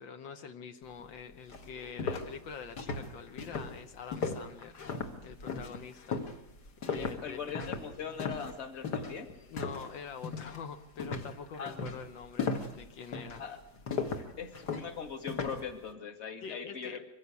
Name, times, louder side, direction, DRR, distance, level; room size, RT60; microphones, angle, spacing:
voice 1, 0.0-4.8 5.2-6.2 6.8-7.4 9.5-13.4 16.4-17.1, left 6 dB, 80° left, 8 dB, 1.8 m, -45 dB
sound 1, 1.0-1.1 1.5-9.9 10.2-10.6 11.0-15.7, left 4 dB, 60° left, 2.2 m, -37 dB
voice 2, 6.9-9.3 11.6-11.8 13.4-13.6 14.4-17.0, left 6 dB, 35° left, 7 dB, 2.0 m, -40 dB
23.5 x 15.5 x 8.3 m, 0.85 s
omnidirectional pair, 2.0 m